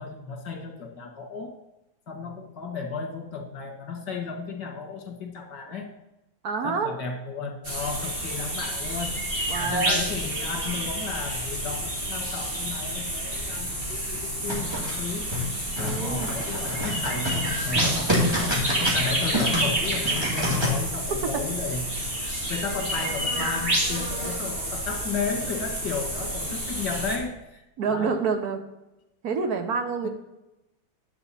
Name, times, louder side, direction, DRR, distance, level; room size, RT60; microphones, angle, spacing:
voice 1, 0.0-1.5 2.1-5.9 6.6-9.2 9.6-15.3 15.8-28.2 30.0-30.1, left 4 dB, 75° left, 2 dB, 2.3 m, -34 dB
voice 2, 6.4-6.9 9.5-10.0 15.8-16.3 27.8-28.6 29.2-30.1, right 5 dB, 65° right, 7 dB, 1.4 m, -27 dB
sound 1, 7.6-27.2, right 1 dB, 30° right, 2.5 m, -29 dB
sound 2, 14.4-20.7, left 1 dB, 15° right, 2.3 m, -28 dB
11.0 x 8.0 x 4.2 m, 0.97 s
omnidirectional pair, 1.9 m